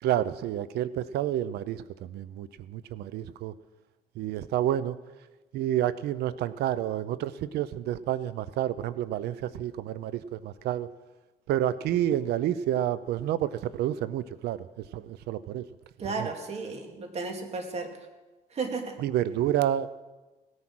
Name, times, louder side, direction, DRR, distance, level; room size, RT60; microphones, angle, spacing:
voice 1, 0.0-3.5 4.2-5.0 5.5-10.9 11.5-14.7 14.9-15.7 16.0-16.3 19.0-19.9, right 12 dB, 75° right, 16 dB, 0.6 m, -29 dB
voice 2, 16.0-17.9 18.5-19.0, right 4 dB, 40° right, 4 dB, 2.5 m, -33 dB
17.5 x 9.6 x 6.2 m, 1.2 s
cardioid pair, 110°, 17 cm